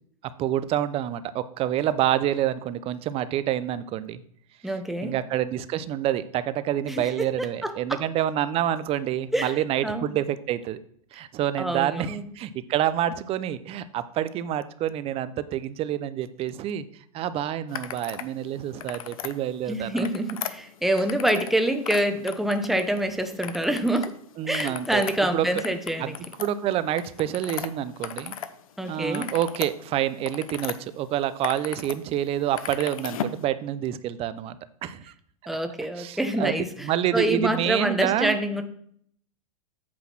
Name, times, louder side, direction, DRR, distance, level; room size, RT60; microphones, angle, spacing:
voice 1, 0.4-4.2 5.0-10.8 11.1-16.9 17.1-20.1 24.4-25.0 25.3-25.6 26.0-26.1 26.4-28.3 28.9-34.6 34.8-35.1 36.0-36.5 36.8-38.4, right 11 dB, 30° right, 14 dB, 0.6 m, -27 dB
voice 2, 4.6-5.2 6.9-8.0 9.3-9.5 9.8-10.2 11.6-12.3 19.7-24.2 24.5-26.2 28.8-29.3 35.5-38.6, right 1 dB, ahead, 6 dB, 0.9 m, -26 dB
sound 1, 17.7-18.3 18.7-19.3 19.8-21.6 21.8-23.0 23.4-24.1 24.4-28.5 28.8-30.8 31.2-32.0 32.2-33.4, left 9 dB, 70° left, 0.8 m, -36 dB
8.6 x 3.9 x 6.0 m, 0.65 s
hypercardioid pair, 110°, 18 cm